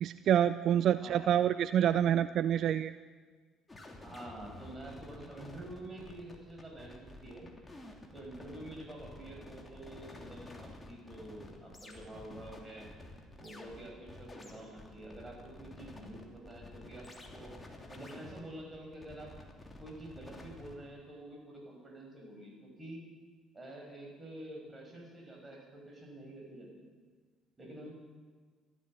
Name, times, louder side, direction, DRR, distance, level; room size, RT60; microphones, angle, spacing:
voice 1, 0.0-2.9, right 10 dB, 55° right, 14 dB, 0.4 m, -27 dB
sound 1, 3.7-20.7, left 2 dB, 20° left, 2.9 m, -51 dB
voice 2, 4.0-7.5 8.1-12.9 13.4-17.6 17.9-19.3 19.8-23.0 23.5-26.9 27.6-27.9, right 1 dB, 25° right, 0 dB, 6.3 m, -48 dB
14.5 x 12.0 x 7.6 m, 1.5 s
figure-of-eight pair, 50°, 0 cm